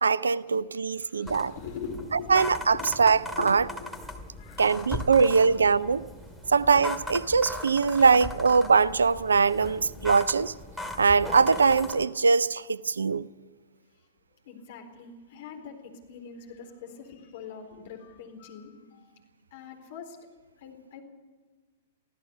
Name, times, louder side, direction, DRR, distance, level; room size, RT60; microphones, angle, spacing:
voice 1, 0.0-1.5 2.3-3.6 4.6-6.0 6.5-10.5 11.0-13.3, right 5 dB, 70° right, 0.6 m, -22 dB
voice 2, 0.9-3.5 3.8-5.6 6.5-6.6 8.0-8.1 14.5-19.0 19.5-20.2 20.6-21.0, left 6 dB, 50° left, 4.2 m, -43 dB
sound 1, 1.3-12.0, left 1 dB, ahead, 2.0 m, -38 dB
24.0 x 16.0 x 7.1 m
figure-of-eight pair, 105°, 0 cm